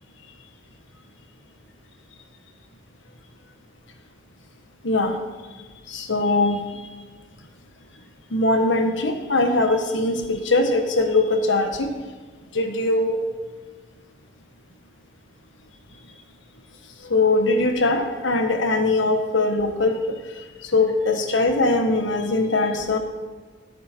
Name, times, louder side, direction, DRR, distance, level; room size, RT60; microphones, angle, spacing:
voice 1, 4.8-5.2 5.9-6.6 8.3-11.9 12.5-13.2 17.0-20.2 20.6-23.0, left 2 dB, 70° left, 6 dB, 1.4 m, -21 dB
15.5 x 8.8 x 4.5 m, 1.4 s
head